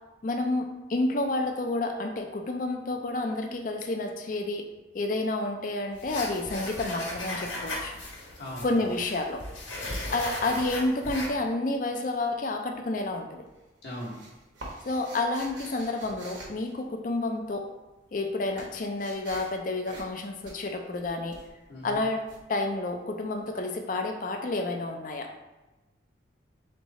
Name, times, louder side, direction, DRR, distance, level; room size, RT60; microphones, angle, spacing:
voice 1, 0.2-4.7 4.9-7.9 8.6-9.4 10.1-13.5 14.9-17.7 18.1-21.4 21.8-22.2 22.5-25.3, left 2 dB, 45° left, 4 dB, 0.4 m, -30 dB
sound 1, 5.9-11.3, left 1 dB, 80° left, 1.3 m, -37 dB
voice 2, 8.4-8.9 13.8-14.2 21.7-22.0, left 1 dB, 60° left, -7 dB, 1.1 m, -39 dB
sound 2, 12.6-13.2 13.5-17.5 17.8-23.4, right 2 dB, 80° right, 1.1 m, -47 dB
3.5 x 3.3 x 4.1 m, 1.1 s
head